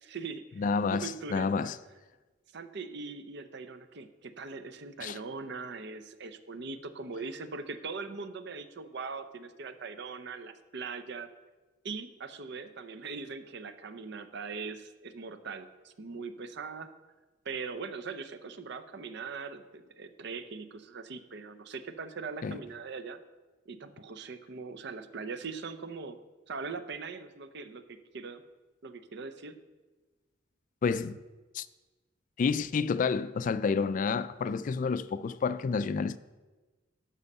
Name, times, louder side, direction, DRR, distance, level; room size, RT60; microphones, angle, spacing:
voice 1, 0.0-0.7 0.9-1.7 2.5-11.3 11.8-16.9 17.4-23.2 23.7-26.2 26.5-28.4 28.8-29.6, right 4 dB, 60° right, 0.7 m, -41 dB
voice 2, 0.6-1.8 5.0-5.2 22.4-22.6 30.8-31.2 31.5-31.7 32.4-36.2, left 5 dB, 45° left, 0.3 m, -29 dB
12.5 x 5.4 x 5.4 m
head